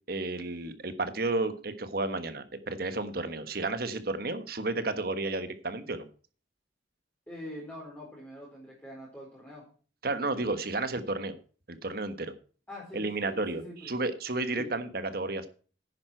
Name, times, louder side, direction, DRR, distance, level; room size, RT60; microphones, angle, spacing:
voice 1, 0.1-6.0 10.0-11.4 11.7-12.3 12.9-15.5, right 2 dB, 55° right, 10 dB, 1.4 m, -32 dB
voice 2, 7.3-9.7 12.7-14.0 14.6-14.8, left 1 dB, 10° left, -6 dB, 4.3 m, -44 dB
10.5 x 9.7 x 4.6 m, 0.39 s
head